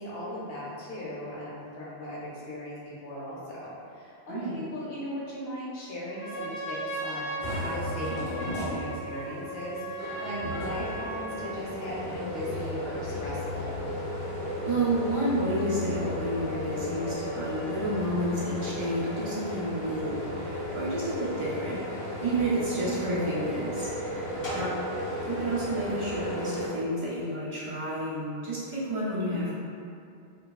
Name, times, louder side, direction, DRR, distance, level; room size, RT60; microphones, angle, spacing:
voice 1, 0.0-13.8 24.3-24.6, left 1 dB, 65° left, -7 dB, 0.9 m, -38 dB
Trumpet, 6.1-11.6, right 2 dB, 75° right, 0.8 m, -37 dB
sound 1, 7.4-26.7, left 1 dB, 35° left, 0.7 m, -35 dB
sound 2, 14.3-19.3, equal, 20° right, 0.7 m, -44 dB
voice 2, 14.6-21.8 22.2-24.8 25.3-29.5, right 1 dB, 50° right, -9 dB, 0.3 m, -30 dB
3.0 x 2.3 x 2.3 m, 2.4 s
omnidirectional pair, 1.1 m